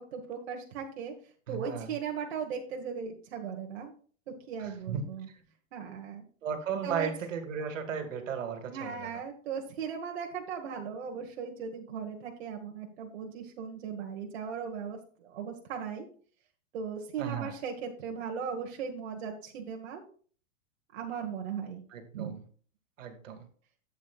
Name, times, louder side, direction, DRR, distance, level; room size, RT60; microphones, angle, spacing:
voice 1, 0.0-3.9 4.3-5.3 5.7-6.3 6.8-7.1 8.7-16.1 16.7-20.0 20.9-21.8 22.1-22.3, right 6 dB, 55° right, 1 dB, 1.5 m, -38 dB
voice 2, 1.5-1.9 4.6-5.0 6.4-9.1 17.2-17.5 21.9-22.4 23.0-23.4, right 7 dB, 80° right, 7 dB, 2.1 m, -35 dB
12.0 x 8.3 x 2.4 m, 0.43 s
supercardioid pair, 175°, 38 cm